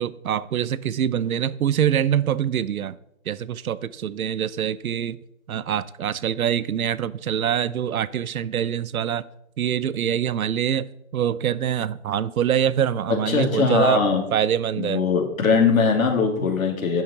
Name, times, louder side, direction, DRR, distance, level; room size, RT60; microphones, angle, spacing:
voice 1, 0.0-2.9 3.3-5.2 5.5-9.2 9.6-14.0 14.3-15.0, right 9 dB, 80° right, 17 dB, 0.8 m, -24 dB
voice 2, 13.3-14.2 14.8-17.0, left 5 dB, 75° left, 3 dB, 3.2 m, -21 dB
11.0 x 5.8 x 5.8 m, 0.79 s
hypercardioid pair, 150°, 41 cm